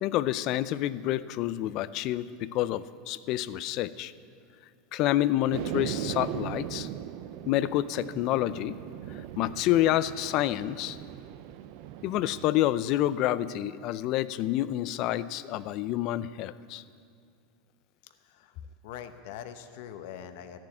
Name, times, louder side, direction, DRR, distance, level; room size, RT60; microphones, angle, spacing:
voice 1, 0.0-4.1 4.9-6.9 7.5-8.8 9.4-11.0 12.0-16.8, left 14 dB, 50° left, 16 dB, 0.5 m, -28 dB
sound 1, 5.5-12.5, right 11 dB, 60° right, 0.5 m, -39 dB
voice 2, 18.2-18.6 18.8-20.6, left 9 dB, 70° left, 8 dB, 0.9 m, -43 dB
14.0 x 7.4 x 9.6 m, 2.3 s
supercardioid pair, 125°, 0 cm